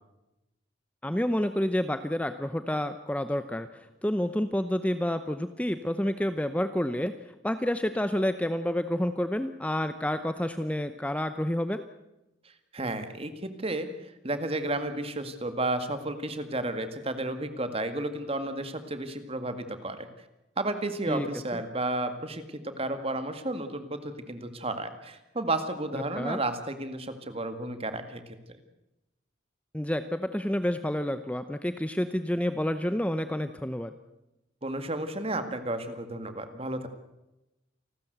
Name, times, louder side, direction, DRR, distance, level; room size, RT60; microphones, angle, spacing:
voice 1, 1.0-7.1 7.4-11.8 21.1-21.3 21.5-21.6 25.9-26.4 29.7-33.9, left 1 dB, 5° left, 10 dB, 0.7 m, -29 dB
voice 2, 12.7-20.1 20.6-28.6 34.6-36.9, right 2 dB, 30° right, 9 dB, 2.0 m, -32 dB
29.0 x 13.0 x 8.0 m, 0.95 s
head